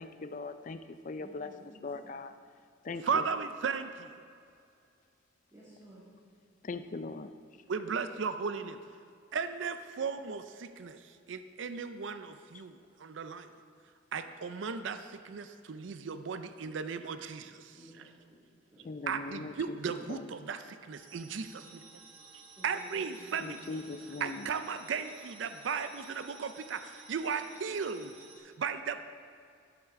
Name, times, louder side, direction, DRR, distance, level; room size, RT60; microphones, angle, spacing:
voice 1, 0.0-0.8 1.0-1.5 1.8-2.3 2.8-3.3 6.6-7.3 18.8-19.8 20.1-20.3 23.4-24.5, left 3 dB, 40° left, 10 dB, 0.4 m, -40 dB
voice 2, 1.2-2.1 5.5-6.1 12.8-12.9 17.4-18.1 18.7-18.9 22.6-23.6, equal, 20° right, -10 dB, 2.0 m, -55 dB
voice 3, 3.0-4.2 7.7-8.8 9.3-11.0 11.3-13.5 14.1-17.5 19.1-20.6 20.9-21.8 22.6-23.8 24.2-28.1 28.4-29.0, right 5 dB, 70° right, 10 dB, 0.4 m, -36 dB
sound 1, 20.9-28.4, right 4 dB, 85° right, 1.8 m, -54 dB
11.5 x 8.0 x 3.7 m, 2.3 s
head